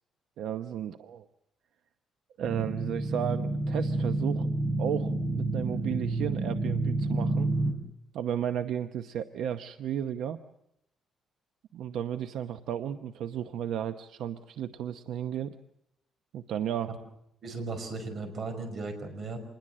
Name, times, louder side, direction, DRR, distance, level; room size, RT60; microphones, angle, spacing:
voice 1, 0.4-1.3 2.4-4.5 4.8-7.5 8.1-10.4 11.7-15.5 16.3-16.9, right 9 dB, 75° right, 8 dB, 0.8 m, -33 dB
sound 1, 2.4-7.7, right 2 dB, 25° right, 3.9 m, -29 dB
voice 2, 17.4-19.4, right 3 dB, 45° right, 6 dB, 5.6 m, -36 dB
26.5 x 21.0 x 7.5 m, 0.78 s
cardioid pair, 155°, 0 cm